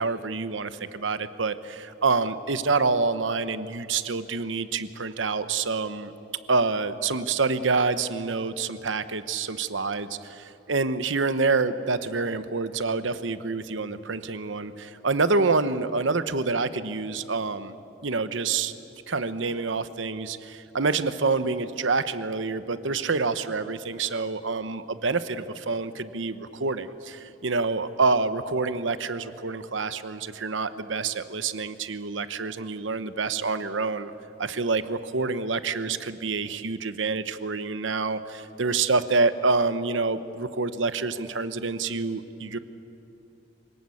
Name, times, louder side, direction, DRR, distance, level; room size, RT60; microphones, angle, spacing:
voice 1, 0.0-6.1 6.5-17.8 18.0-18.7 19.1-34.1 34.4-42.6, right 4 dB, 80° right, 12 dB, 1.0 m, -27 dB
26.0 x 18.5 x 8.6 m, 2.9 s
head